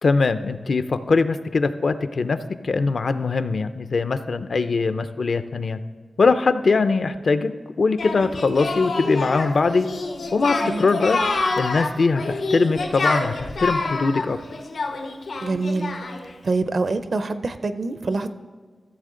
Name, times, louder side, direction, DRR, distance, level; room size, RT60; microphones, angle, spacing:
voice 1, 0.0-5.8 6.2-7.5 7.8-9.9 10.3-11.2 11.6-14.4, left 4 dB, 60° left, 11 dB, 0.5 m, -21 dB
Singing, 8.0-16.3, left 3 dB, 90° left, 1.1 m, -27 dB
voice 2, 15.4-15.9 16.4-18.3, right 3 dB, 55° right, 11 dB, 0.5 m, -25 dB
14.5 x 7.4 x 3.8 m, 1.5 s
wide cardioid pair, 135°, 0 cm